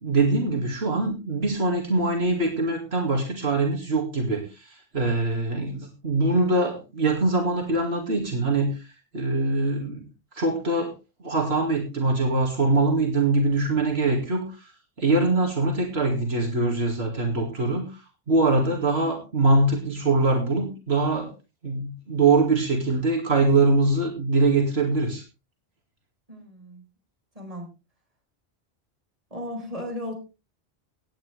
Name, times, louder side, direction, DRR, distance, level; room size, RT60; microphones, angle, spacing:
voice 1, 0.0-8.8 9.1-10.0 10.3-10.9 11.2-14.7 15.0-18.0 18.3-21.3 21.6-25.2, right 2 dB, 80° right, 1 dB, 2.6 m, -23 dB
voice 2, 26.3-26.8 27.3-27.7 29.3-30.1, left 1 dB, 35° right, 1 dB, 4.7 m, -35 dB
17.5 x 9.5 x 3.4 m, 0.30 s
omnidirectional pair, 1.1 m